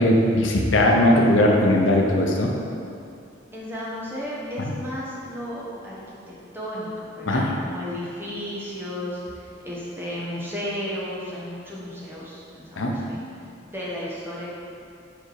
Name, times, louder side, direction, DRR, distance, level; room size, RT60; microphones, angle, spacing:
voice 1, 0.0-2.5 4.6-4.7 7.3-7.5 12.8-12.9, left 1 dB, 85° left, 0 dB, 0.8 m, -19 dB
voice 2, 3.5-6.0 6.3-14.5, equal, 10° right, -7 dB, 1.1 m, -34 dB
5.3 x 4.8 x 4.7 m, 2.5 s
head